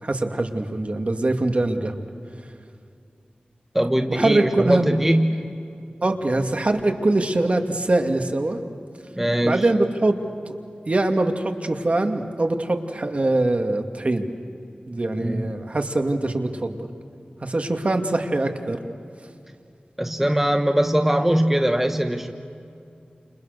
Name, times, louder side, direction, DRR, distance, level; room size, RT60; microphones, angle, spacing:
voice 1, 0.0-2.0 4.1-5.0 6.0-8.6 9.4-10.2 10.5-10.6 10.9-14.3 14.9-16.9 17.4-18.8, right 2 dB, 45° right, 5 dB, 2.3 m, -23 dB
voice 2, 3.7-5.5 9.2-9.7 15.2-15.6 20.0-22.3, right 1 dB, 10° right, 6 dB, 1.4 m, -21 dB
30.0 x 28.5 x 6.7 m, 2.5 s
wide cardioid pair, 65°, 3 cm